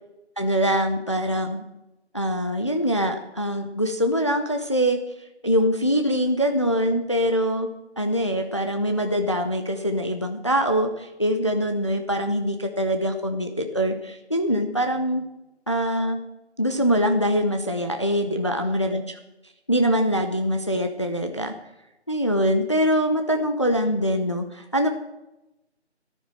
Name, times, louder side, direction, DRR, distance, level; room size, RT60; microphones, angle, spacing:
voice 1, 0.4-1.6 2.1-5.0 5.4-7.7 8.0-15.2 15.7-16.2 16.6-19.2 19.7-21.5 22.1-24.9, equal, 25° left, 6 dB, 0.7 m, -23 dB
13.5 x 10.5 x 6.2 m, 0.93 s
figure-of-eight pair, 165°, 34 cm